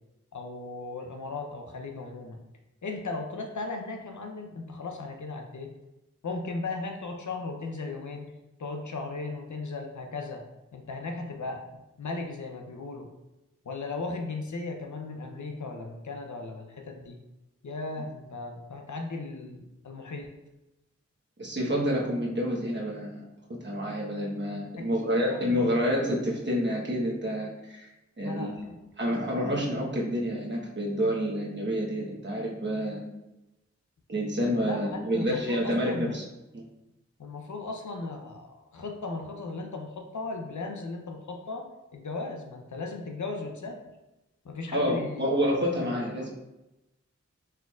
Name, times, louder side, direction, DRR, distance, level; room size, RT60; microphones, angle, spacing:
voice 1, 0.3-2.4 2.8-5.7 6.2-8.3 8.6-10.4 10.7-13.1 13.7-17.2 17.6-20.4 24.8-25.7 28.2-28.8 34.6-36.2 37.2-41.7 41.9-43.8 44.4-45.3, left 3 dB, 80° left, 3 dB, 0.7 m, -37 dB
voice 2, 21.4-23.2 23.6-27.9 28.2-28.5 29.0-33.0 34.1-36.2 36.5-36.6 44.7-46.3, equal, 40° right, -3 dB, 1.1 m, -28 dB
4.4 x 3.8 x 2.4 m, 0.97 s
wide cardioid pair, 45°, 29 cm